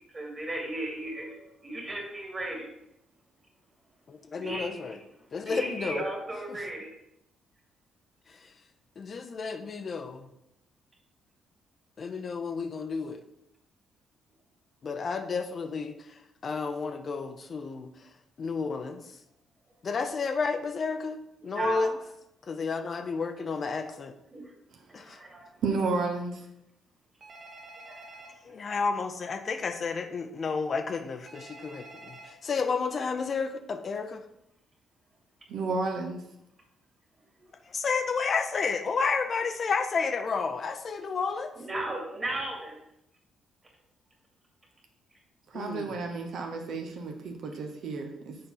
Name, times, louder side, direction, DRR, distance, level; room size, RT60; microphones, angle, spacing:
voice 1, 0.1-1.4 1.6-2.7 4.4-4.8 5.5-6.9 21.4-21.9 24.3-24.4 24.9-25.5 27.9-28.0 41.6-42.8, right 2 dB, 25° right, -1 dB, 2.1 m, -35 dB
voice 2, 4.1-5.0 5.3-6.1 6.5-6.7 8.3-8.5 9.0-10.3 12.0-13.2 14.8-19.2 19.8-22.0 22.4-24.1 24.9-25.2 28.4-34.2 37.6-41.5 45.5-46.0, left 5 dB, 45° left, 8 dB, 0.6 m, -31 dB
voice 3, 25.6-26.4 35.5-36.2 45.5-48.4, right 3 dB, 70° right, 3 dB, 0.9 m, -32 dB
Telephone, 27.2-28.3 31.3-32.3, right 2 dB, 45° right, 1.4 m, -48 dB
6.7 x 4.2 x 3.9 m, 0.82 s
cardioid pair, 90°, 0 cm